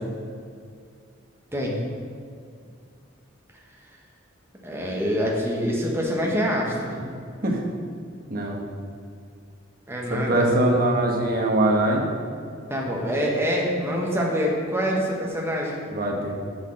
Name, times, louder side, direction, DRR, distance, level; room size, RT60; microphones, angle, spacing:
voice 1, 4.6-6.9 9.9-10.5 12.7-15.8, equal, 10° right, -2 dB, 1.2 m, -25 dB
voice 2, 10.1-12.1 15.9-16.3, right 1 dB, 45° right, 0 dB, 1.2 m, -22 dB
6.4 x 6.1 x 6.4 m, 2.3 s
head